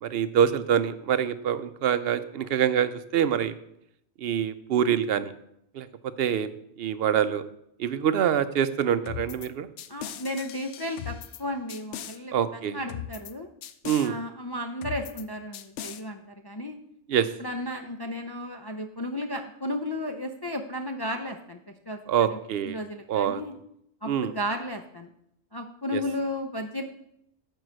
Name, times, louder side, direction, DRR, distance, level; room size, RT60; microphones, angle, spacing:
voice 1, 0.0-3.5 4.2-5.3 5.7-5.9 6.2-6.5 6.8-7.4 7.8-9.7 12.3-12.8 13.8-14.1 17.1-17.3 22.1-22.8 23.1-23.4 24.1-24.3 25.9-26.0, right 9 dB, 65° right, 13 dB, 0.8 m, -25 dB
sound 1, 9.1-9.5 9.8-11.4 11.7-12.2 12.9-13.3 13.6-14.1 14.8-15.2 15.5-16.0, left 10 dB, 90° left, 0.9 m, -38 dB
voice 2, 9.9-13.5 14.0-16.8 17.4-21.6 21.9-22.4 22.6-23.5 24.0-25.1 25.5-26.8, left 1 dB, 35° left, 3 dB, 0.4 m, -34 dB
9.3 x 4.8 x 6.4 m, 0.77 s
omnidirectional pair, 1.2 m